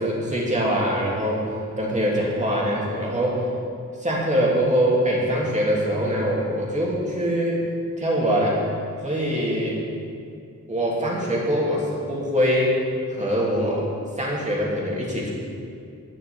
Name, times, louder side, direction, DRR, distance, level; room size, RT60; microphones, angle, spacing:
voice 1, 0.0-1.4 1.8-3.4 4.0-7.6 8.0-8.6 9.0-9.8 10.7-12.8 13.1-13.9 14.2-15.3, equal, 20° right, -5 dB, 2.6 m, -23 dB
11.0 x 5.9 x 8.9 m, 2.4 s
wide cardioid pair, 150°, 32 cm